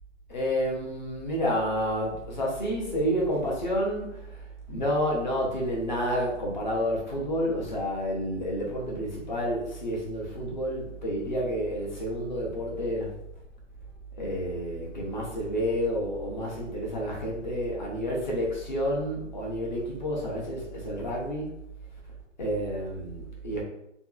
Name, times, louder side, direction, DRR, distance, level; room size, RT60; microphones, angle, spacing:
voice 1, 0.3-4.3 4.7-13.1 14.2-21.5 22.4-23.6, equal, 40° left, -2 dB, 0.6 m, -29 dB
2.6 x 2.3 x 2.2 m, 0.81 s
hypercardioid pair, 175°, 37 cm